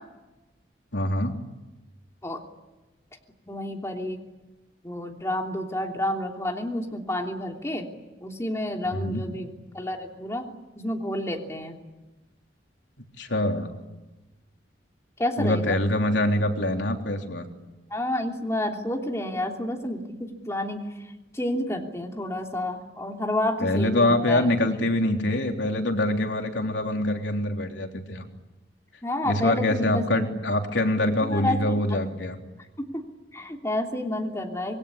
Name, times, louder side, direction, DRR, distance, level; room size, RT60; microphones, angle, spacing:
voice 1, 0.9-1.3 8.9-9.2 13.2-13.7 15.4-17.4 23.6-28.2 29.2-32.4, left 1 dB, 85° left, 3 dB, 3.5 m, -24 dB
voice 2, 3.5-4.2 4.8-7.9 8.2-10.5 10.7-11.8 15.2-15.8 17.9-20.8 21.3-24.4 29.0-30.0 31.2-32.0 32.8-33.0 33.3-34.8, left 1 dB, 15° left, 2 dB, 3.2 m, -30 dB
27.0 x 21.5 x 10.0 m, 1.1 s
head